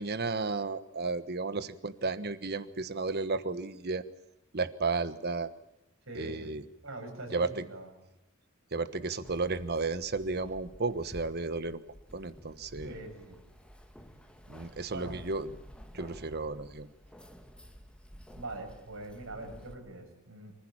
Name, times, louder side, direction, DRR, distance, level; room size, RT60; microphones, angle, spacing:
voice 1, 0.0-4.0 4.5-5.5 6.1-6.6 7.3-7.6 8.7-11.8 12.1-12.9 14.5-15.5 15.9-16.9, right 3 dB, 50° right, 13 dB, 1.3 m, -33 dB
voice 2, 6.1-6.6 6.8-7.9 12.8-13.4 14.9-15.2 18.4-20.5, right 2 dB, 75° right, 2 dB, 7.5 m, -43 dB
Keys jangling, 9.2-19.7, equal, 5° left, 1.8 m, -52 dB
25.0 x 15.5 x 8.8 m, 0.87 s
head